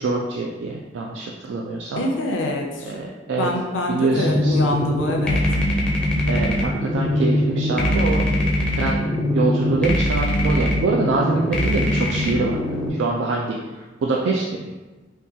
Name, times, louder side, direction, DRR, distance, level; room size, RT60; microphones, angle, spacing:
voice 1, 0.0-2.1 2.9-3.5 3.9-4.6 6.3-12.6 13.0-14.7, right 3 dB, 70° right, -1 dB, 0.3 m, -25 dB
voice 2, 2.0-3.0 3.4-5.4, left 1 dB, 80° left, 1 dB, 0.5 m, -25 dB
sound 1, 4.1-12.9, left 1 dB, 5° left, 0.5 m, -22 dB
3.7 x 2.3 x 2.7 m, 1.2 s
head